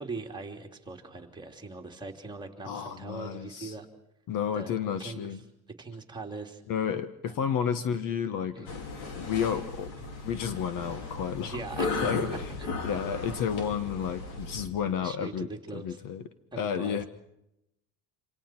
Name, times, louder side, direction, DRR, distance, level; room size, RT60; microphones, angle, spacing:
voice 1, 0.0-3.9 4.5-4.7 5.0-5.4 5.8-6.6 7.3-7.5 8.5-8.8 11.5-12.1 12.6-12.9 15.0-16.0 16.5-17.1, right 3 dB, 10° right, 0 dB, 3.2 m, -41 dB
voice 2, 2.6-3.7 4.3-5.4 6.7-8.8 9.2-9.9 10.2-11.6 12.0-12.4 12.8-16.2 16.6-17.0, left 8 dB, 55° left, 11 dB, 1.5 m, -31 dB
sound 1, 8.7-14.7, left 3 dB, 80° left, 5.1 m, -35 dB
27.5 x 27.0 x 4.5 m, 0.83 s
cardioid pair, 140°, 40 cm